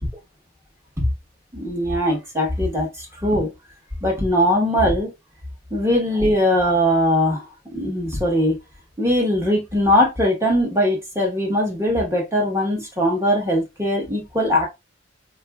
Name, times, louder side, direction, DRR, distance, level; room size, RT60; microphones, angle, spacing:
voice 1, 1.5-3.5 4.0-5.1 5.7-7.4 7.7-8.6 9.0-14.7, equal, 15° right, 1.1 m, -20 dB
4.2 x 2.6 x 2.3 m
head